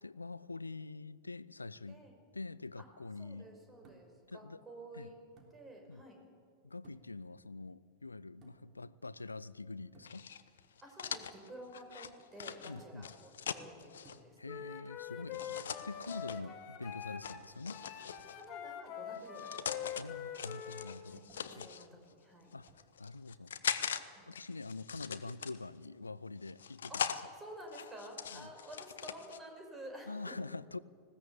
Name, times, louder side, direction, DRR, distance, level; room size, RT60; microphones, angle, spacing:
voice 1, 0.0-2.0 2.3-3.5 4.3-4.6 4.9-5.1 5.9-6.0 6.6-10.3 12.7-13.1 14.4-17.8 19.9-21.2 21.5-22.0 22.5-22.7 23.0-27.2 28.3-28.5 30.1-30.8, left 3 dB, 80° left, 19 dB, 0.5 m, -45 dB
voice 2, 3.2-5.2 5.5-6.2 10.8-14.4 18.3-19.7 21.1-22.5 24.1-24.3 26.9-27.0 27.4-30.1, right 1 dB, 15° right, 3 dB, 5.5 m, -51 dB
sound 1, 3.8-4.3 5.4-5.6 6.8-7.2 8.4-8.8 9.9-10.2 12.8-13.1 14.1-14.5 15.4-15.8 16.8-17.2 18.2-18.4 19.8-20.1 21.3-21.6 22.7-22.9, right 3 dB, 35° right, 3.4 m, -62 dB
sound 2, 10.0-14.2 15.3-16.4 17.2-18.5 19.2-20.0 20.3-21.9 22.5-24.0 24.3-25.9 26.4-27.2 27.7-29.4, left 8 dB, 65° left, 1.0 m, -41 dB
Wind instrument woodwind instrument, 14.5-17.4 17.7-20.9, left 9 dB, 35° left, 2.1 m, -44 dB
20.0 x 17.0 x 8.3 m, 2.1 s
figure-of-eight pair, 90°, 0 cm